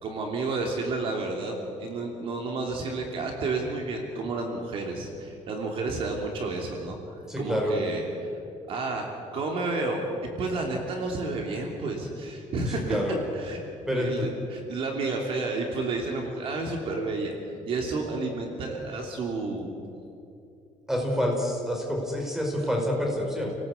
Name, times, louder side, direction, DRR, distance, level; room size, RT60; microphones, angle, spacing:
voice 1, 0.0-7.0 7.4-8.4 8.7-9.1 9.3-10.0 10.4-13.0 13.3-13.6 13.9-17.3 17.7-19.7, right 3 dB, 45° right, 1 dB, 2.9 m, -31 dB
voice 2, 7.3-7.8 12.7-13.2 13.9-14.3 20.9-23.5, equal, 5° right, -1 dB, 4.9 m, -27 dB
30.0 x 18.5 x 8.3 m, 2.7 s
cardioid pair, 175°, 13 cm